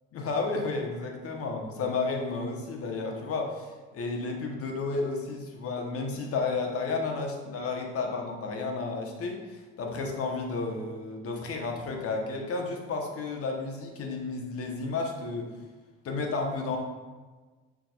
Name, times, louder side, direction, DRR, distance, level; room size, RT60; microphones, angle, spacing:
voice 1, 0.1-15.5 16.0-16.8, left 3 dB, 45° left, 2 dB, 1.2 m, -32 dB
7.2 x 5.8 x 2.4 m, 1.3 s
figure-of-eight pair, 45°, 32 cm